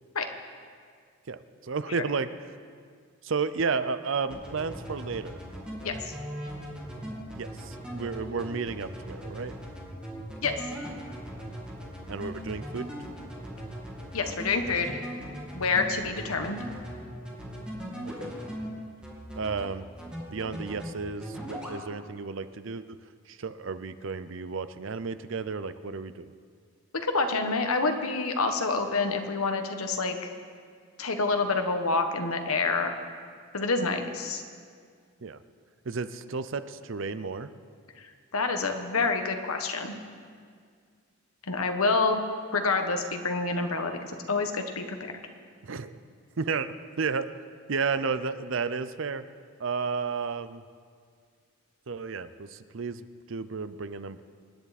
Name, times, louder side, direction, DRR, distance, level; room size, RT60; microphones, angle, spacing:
voice 1, 1.3-2.3 3.2-5.4 7.4-9.5 12.1-12.9 18.0-18.1 19.3-19.9 20.3-23.0 23.3-26.3 35.2-35.4 35.9-37.5 45.6-46.0 46.4-47.3 47.7-49.2 49.6-50.6 51.9-54.2, right 5 dB, 60° right, 13 dB, 0.6 m, -32 dB
sound 1, 4.3-18.7 19.0-19.7 20.0-20.9 21.2-21.8, equal, 5° right, 2.2 m, -39 dB
voice 2, 5.8-6.1 10.4-10.5 14.1-15.0 15.5-16.6 27.0-30.2 31.0-32.9 33.5-34.4 38.0-40.0 41.5-42.2 42.5-45.0, left 3 dB, 80° left, 6 dB, 1.3 m, -27 dB
26.0 x 10.5 x 4.2 m, 2.1 s
head